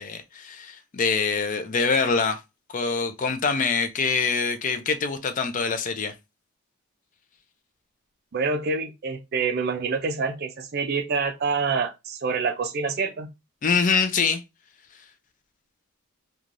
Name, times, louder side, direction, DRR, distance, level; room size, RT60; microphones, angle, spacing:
voice 1, 0.0-2.4 2.7-6.1 13.6-14.4, left 5 dB, 35° left, 0.3 m, -24 dB
voice 2, 8.3-13.3, right 4 dB, 45° right, 0.4 m, -26 dB
3.0 x 2.3 x 2.5 m
head